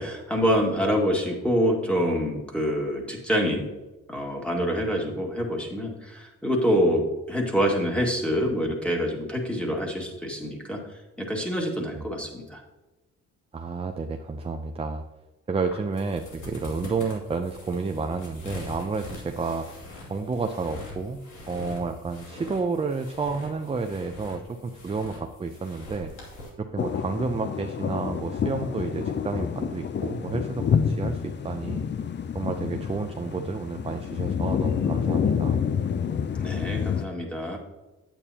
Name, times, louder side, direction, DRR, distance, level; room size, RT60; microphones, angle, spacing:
voice 1, 0.0-3.7 4.1-7.0 7.3-10.8 11.2-12.6 36.4-37.6, equal, 5° left, 0 dB, 2.1 m, -26 dB
voice 2, 13.5-15.0 15.5-19.7 20.1-26.1 26.6-31.9 32.3-35.6, right 4 dB, 20° right, 5 dB, 0.6 m, -30 dB
sound 1, 15.6-26.5, left 2 dB, 80° left, 2.7 m, -43 dB
sound 2, 26.8-37.0, left 7 dB, 35° left, 0.5 m, -28 dB
9.0 x 8.4 x 2.9 m, 1.1 s
cardioid pair, 90°, 30 cm